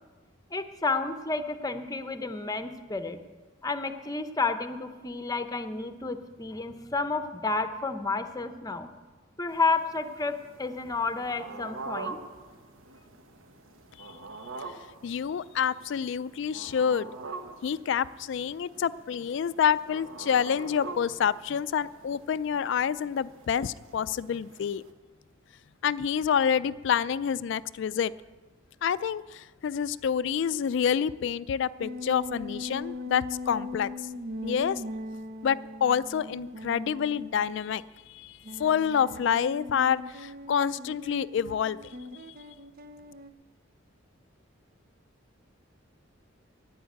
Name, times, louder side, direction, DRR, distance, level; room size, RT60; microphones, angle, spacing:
voice 1, 0.5-3.2 3.6-8.9 9.4-12.2, left 3 dB, 20° left, 9 dB, 0.7 m, -31 dB
sound 1, 9.5-24.9, right 3 dB, 90° right, 1.3 m, -45 dB
voice 2, 15.0-17.1 17.6-24.8 25.8-28.1 28.8-33.9 34.4-34.8 35.4-42.0, left 7 dB, 65° left, 17 dB, 0.3 m, -28 dB
sound 2, 31.8-37.8 38.4-43.3, left 2 dB, 45° right, 0.6 m, -40 dB
11.0 x 8.7 x 9.3 m, 1.3 s
head